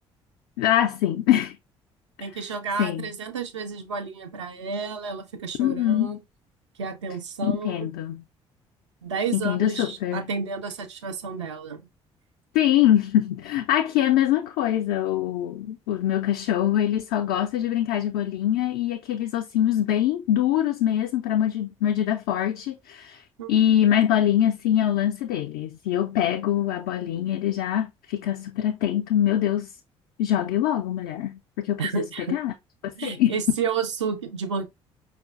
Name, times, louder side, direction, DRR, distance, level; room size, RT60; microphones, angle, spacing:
voice 1, 0.6-1.6 2.8-3.1 5.6-6.2 7.4-8.2 9.3-10.3 12.5-23.2 23.5-29.7 30.2-32.5 32.8-33.3, left 11 dB, 60° left, 0.4 m, -24 dB
voice 2, 2.2-6.2 6.8-7.9 9.0-11.9 23.4-23.5 31.8-32.4 33.0-34.7, right 5 dB, 80° right, 0.4 m, -31 dB
4.9 x 2.3 x 2.4 m
figure-of-eight pair, 50°, 15 cm